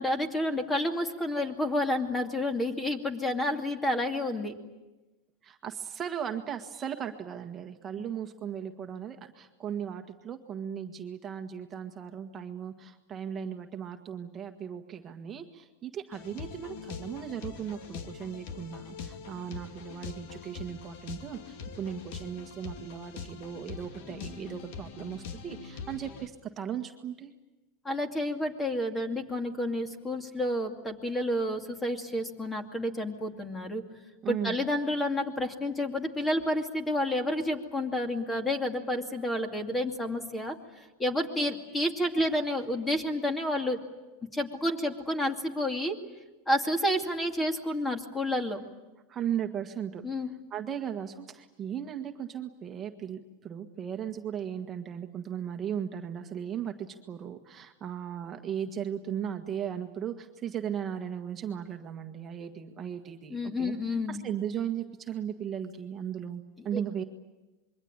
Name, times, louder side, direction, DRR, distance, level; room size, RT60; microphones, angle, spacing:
voice 1, 0.0-4.5 27.8-33.8 34.3-43.8 44.3-46.0 46.5-48.6 50.0-50.3 63.3-64.2 66.7-66.8, left 1 dB, 10° left, 6 dB, 2.5 m, -30 dB
voice 2, 5.4-27.3 34.2-34.5 49.1-50.0 50.5-63.7 64.1-67.0, right 8 dB, 25° right, 4 dB, 1.6 m, -37 dB
sound 1, 16.1-26.3, left 6 dB, 65° left, 2.4 m, -43 dB
26.0 x 23.0 x 8.9 m, 1.1 s
supercardioid pair, 140°, 0 cm